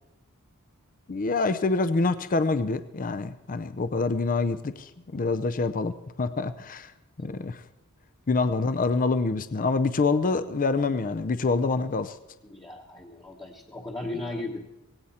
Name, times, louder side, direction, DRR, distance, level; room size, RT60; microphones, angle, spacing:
voice 1, 1.1-6.9 7.2-7.6 8.3-12.2, left 3 dB, 40° left, 11 dB, 0.5 m, -26 dB
voice 2, 12.5-14.6, left 2 dB, 15° left, 0 dB, 1.1 m, -36 dB
18.0 x 17.0 x 4.3 m, 0.96 s
head